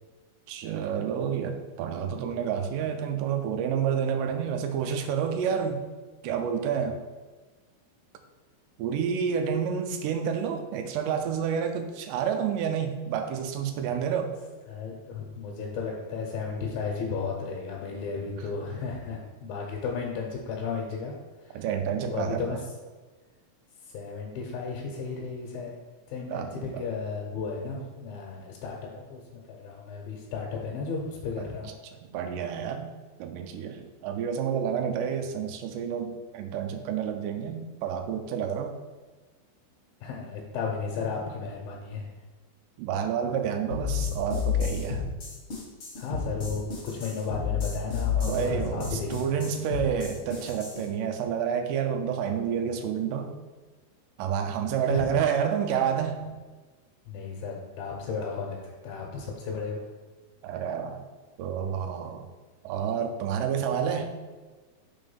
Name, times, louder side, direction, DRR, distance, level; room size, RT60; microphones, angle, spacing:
voice 1, 0.5-5.8 6.2-7.0 8.8-14.4 21.5-22.6 26.3-26.8 31.4-31.5 31.9-32.9 33.2-38.7 42.8-45.0 48.2-53.3 54.2-56.2 60.4-61.0 61.4-62.2 62.6-64.2, right 7 dB, 90° right, 5 dB, 1.9 m, -29 dB
voice 2, 14.7-21.1 21.5-21.6 22.1-22.6 23.9-25.7 26.1-31.7 40.0-42.0 46.0-49.3 54.8-55.1 57.1-58.6 58.8-59.8, left 5 dB, 75° left, -2 dB, 2.5 m, -34 dB
sound 1, 43.7-50.8, left 7 dB, 55° left, 1.5 m, -31 dB
5.6 x 3.6 x 5.4 m, 1.3 s
omnidirectional pair, 4.4 m